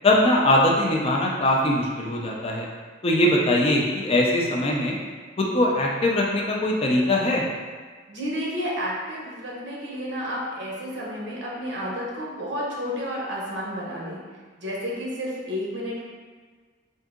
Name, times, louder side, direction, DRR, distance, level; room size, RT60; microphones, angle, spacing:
voice 1, 0.0-2.7 3.0-5.0 5.4-7.4, left 1 dB, 30° left, -1 dB, 0.4 m, -21 dB
voice 2, 8.1-14.2 14.6-16.0, equal, 65° right, -5 dB, 0.9 m, -31 dB
3.6 x 2.6 x 3.6 m, 1.5 s
head